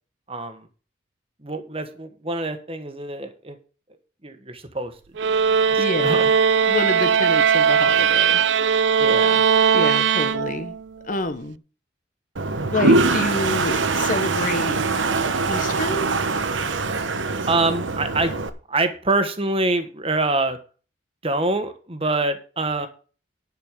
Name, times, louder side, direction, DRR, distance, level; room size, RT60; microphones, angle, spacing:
voice 1, 0.3-0.7 1.4-3.6 4.2-4.9 5.2-6.3 9.0-9.4 17.5-18.3 18.7-20.6 21.2-22.9, right 2 dB, 30° right, 9 dB, 1.4 m, -25 dB
sound 1, 5.2-10.8, right 7 dB, 70° right, 0.4 m, -19 dB
voice 2, 5.8-6.3 6.7-8.4 9.7-10.7 11.0-11.6 12.7-14.8 15.5-16.1, left 2 dB, 45° left, 8 dB, 1.0 m, -27 dB
Toilet flush, 12.4-18.5, right 3 dB, 85° right, 1.1 m, -23 dB
10.5 x 5.5 x 6.7 m, 0.36 s
head